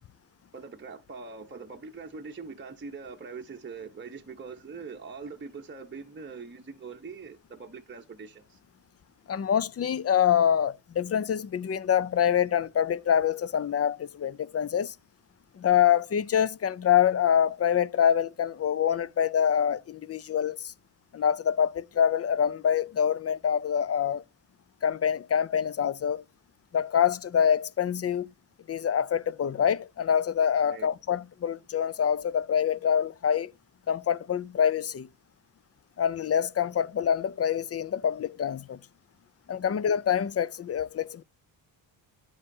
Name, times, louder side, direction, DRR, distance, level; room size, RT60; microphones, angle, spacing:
voice 1, 0.5-8.6 30.7-30.9, right 4 dB, 20° right, 0.8 m, -42 dB
voice 2, 9.3-14.9 15.6-20.7 21.1-24.2 24.8-26.2 26.7-28.3 28.7-33.5 33.9-35.1 36.0-38.8 39.5-41.2, left 8 dB, 30° left, 0.4 m, -25 dB
9.7 x 7.4 x 2.7 m
cardioid pair, 75°, 49 cm